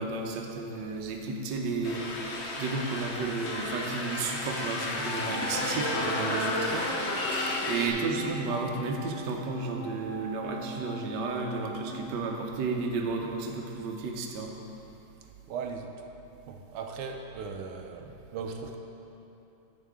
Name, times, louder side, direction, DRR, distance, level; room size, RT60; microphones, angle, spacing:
voice 1, 0.0-2.1 2.6-6.9 7.4-14.5, right 4 dB, 65° right, 1 dB, 1.3 m, -32 dB
sound 1, 1.8-7.9, left 2 dB, 65° left, 0.6 m, -32 dB
Wind instrument woodwind instrument, 5.1-12.7, equal, 35° left, 1.6 m, -43 dB
voice 2, 15.5-15.9 16.5-18.8, right 5 dB, 85° right, 4 dB, 1.6 m, -38 dB
10.5 x 7.4 x 3.6 m, 2.9 s
omnidirectional pair, 2.4 m